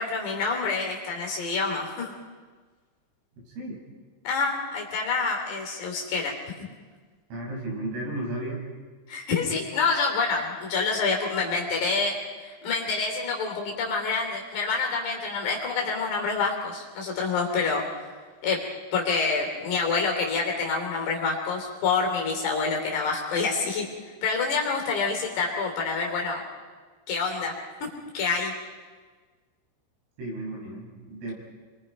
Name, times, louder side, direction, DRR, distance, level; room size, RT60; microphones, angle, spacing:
voice 1, 0.0-2.2 4.2-6.3 9.1-17.8 18.4-18.6 18.9-23.9 24.2-26.4 27.1-27.5 27.8-27.9 28.1-28.5, left 4 dB, 60° left, 0 dB, 4.7 m, -27 dB
voice 2, 3.4-3.8 7.3-8.6 30.2-31.3, right 1 dB, 90° right, -2 dB, 8.4 m, -34 dB
29.5 x 23.0 x 5.3 m, 1.4 s
omnidirectional pair, 5.6 m